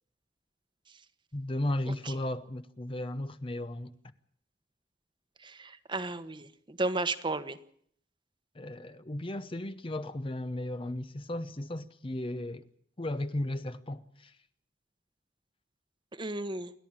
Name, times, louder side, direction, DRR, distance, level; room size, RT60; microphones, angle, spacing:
voice 1, 1.3-3.9 8.6-12.7 13.0-14.3, left 1 dB, 30° left, 0.9 m, -35 dB
voice 2, 5.4-7.6 16.1-16.7, right 2 dB, 25° right, 1.2 m, -34 dB
28.5 x 11.0 x 8.9 m
head